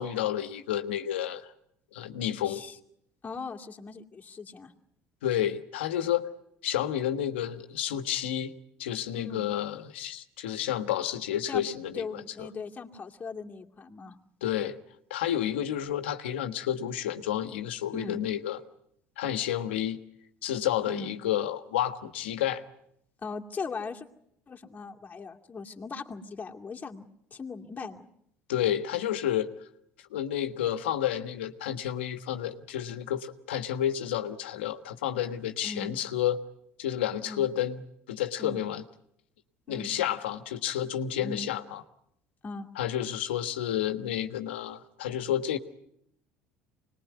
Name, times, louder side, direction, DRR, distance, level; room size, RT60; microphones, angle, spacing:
voice 1, 0.0-1.5 1.9-2.6 5.2-6.3 6.6-8.5 8.8-12.5 14.4-14.8 15.1-18.6 19.2-20.0 20.4-22.6 28.5-29.5 30.1-36.4 36.8-37.8 38.1-38.8 39.7-41.8 42.8-45.6, left 11 dB, 85° left, 9 dB, 1.5 m, -30 dB
voice 2, 2.5-2.8 3.2-4.7 9.1-9.5 11.5-11.7 11.9-14.2 17.9-18.2 20.9-21.1 23.2-24.1 24.5-28.1 35.6-35.9 37.2-37.4 38.4-38.6 39.7-39.9 41.1-41.5 42.4-42.7, left 4 dB, 30° left, 1 dB, 2.4 m, -39 dB
25.5 x 20.5 x 9.5 m, 0.75 s
hypercardioid pair, 75°, 6 cm